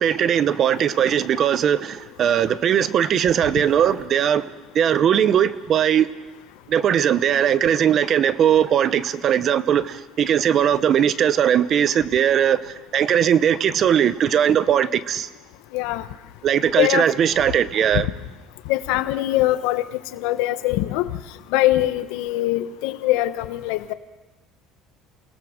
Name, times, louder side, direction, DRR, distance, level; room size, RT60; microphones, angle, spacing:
voice 1, 0.0-4.4 4.7-6.1 6.7-12.6 12.9-15.3 16.4-18.1, right 9 dB, 40° right, 0.9 m, -19 dB
voice 2, 15.7-16.0 16.8-17.1 18.7-19.8 20.1-21.0 21.5-23.9, left 16 dB, 80° left, 1.2 m, -22 dB
28.5 x 18.0 x 6.6 m
cardioid pair, 140°, 0 cm